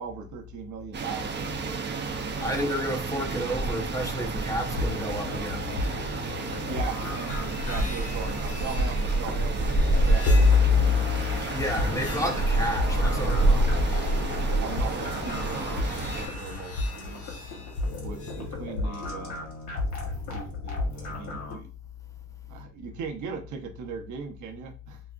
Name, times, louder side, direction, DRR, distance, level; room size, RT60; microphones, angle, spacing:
voice 1, 0.0-1.9 6.7-11.1 11.9-12.1 14.6-17.3 18.0-19.5 20.3-21.7 22.5-25.0, right 6 dB, 75° right, 0.8 m, -39 dB
sound 1, 0.9-16.3, right 2 dB, 35° right, 0.6 m, -28 dB
voice 2, 2.4-5.7 11.5-13.9, equal, 10° left, 0.7 m, -31 dB
sound 2, 4.7-21.6, left 2 dB, 70° left, 1.3 m, -34 dB
sound 3, 5.6-18.4, left 4 dB, 50° left, 1.1 m, -30 dB
4.7 x 2.0 x 2.5 m
cardioid pair, 90°, 30 cm